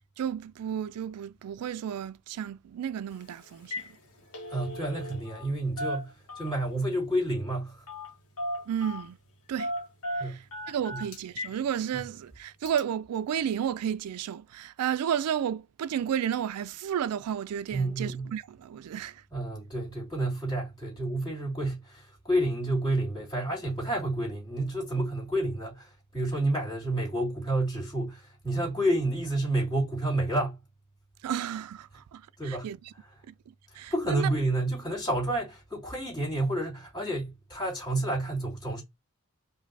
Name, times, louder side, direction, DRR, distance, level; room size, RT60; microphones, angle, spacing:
voice 1, 0.2-3.8 8.7-9.2 9.5-9.7 10.1-19.2 31.2-32.8 33.3-34.3, right 9 dB, 85° right, 0.3 m, -32 dB
Telephone, 3.1-3.3 3.6-3.9 4.2-5.5 5.8-6.7 7.9-8.1 8.4-9.1 9.6-11.6 11.9-12.0 12.7-12.8, equal, 70° left, 1.3 m, -36 dB
voice 2, 4.5-7.8 10.2-10.4 10.9-11.0 17.7-18.3 19.3-30.6 32.4-32.7 33.7-38.8, right 1 dB, 20° left, 2.8 m, -30 dB
5.1 x 2.7 x 2.7 m
head